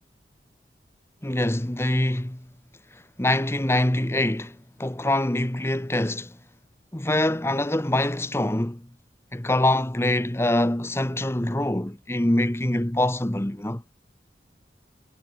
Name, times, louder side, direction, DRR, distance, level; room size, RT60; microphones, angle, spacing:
voice 1, 1.2-2.5 3.2-6.4 6.9-8.9 9.3-13.8, left 1 dB, 15° left, 1.0 m, -24 dB
head